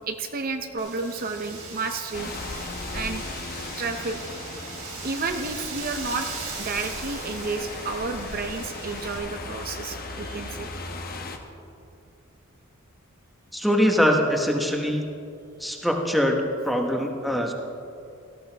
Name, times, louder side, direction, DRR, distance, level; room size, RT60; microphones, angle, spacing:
voice 1, 0.1-2.3 2.9-3.2 3.8-4.2 5.0-6.3 6.6-10.7, right 3 dB, 45° right, 6 dB, 0.7 m, -31 dB
Wind, 0.8-9.2, right 4 dB, 80° right, 3.9 m, -39 dB
sound 1, 2.1-11.4, left 3 dB, 45° left, 1.0 m, -37 dB
voice 2, 13.5-15.0 15.6-17.5, equal, ahead, 2 dB, 1.1 m, -23 dB
18.0 x 14.5 x 3.4 m, 2.6 s
head